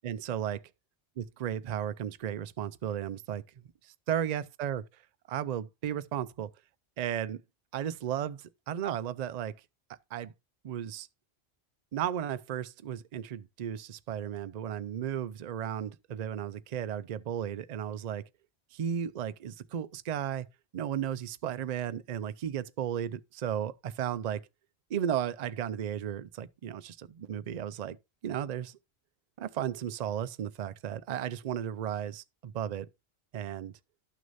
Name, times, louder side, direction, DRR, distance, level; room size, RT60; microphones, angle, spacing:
voice 1, 0.0-0.6 1.2-3.4 4.1-4.8 5.3-6.5 7.0-7.4 7.7-9.5 10.1-10.3 10.6-11.1 11.9-18.2 18.7-20.5 20.7-24.4 24.9-28.0 28.2-28.8 29.4-32.9 33.3-33.7, right 9 dB, 50° right, 0.5 m, -34 dB
12.0 x 6.3 x 2.6 m
omnidirectional pair, 1.1 m